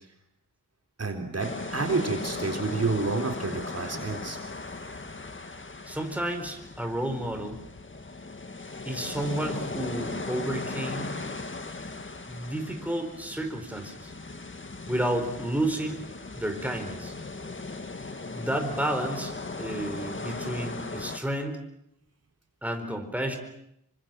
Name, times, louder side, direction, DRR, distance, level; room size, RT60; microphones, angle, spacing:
voice 1, 1.0-4.4, right 3 dB, 50° right, 3 dB, 3.7 m, -29 dB
sound 1, 1.4-21.2, left 3 dB, 35° left, 2.0 m, -38 dB
voice 2, 5.9-7.6 8.8-11.2 12.3-14.1 14.9-16.0 16.3-17.1 18.3-19.3 19.6-21.6 22.6-23.4, right 1 dB, 5° right, 4 dB, 4.6 m, -31 dB
27.0 x 25.0 x 7.7 m, 0.77 s
wide cardioid pair, 105°, 34 cm